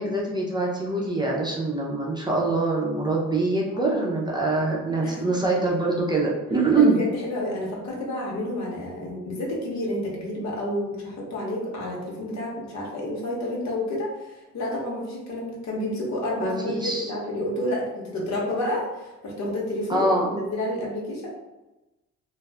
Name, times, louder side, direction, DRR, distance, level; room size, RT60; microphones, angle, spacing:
voice 1, 0.0-7.0 16.4-17.1 19.9-20.3, right 3 dB, 15° right, -3 dB, 0.5 m, -24 dB
voice 2, 3.7-4.1 5.0-5.2 6.8-21.3, left 1 dB, 65° left, -2 dB, 0.9 m, -30 dB
2.4 x 2.0 x 3.3 m, 1.0 s
cardioid pair, 90°, 30 cm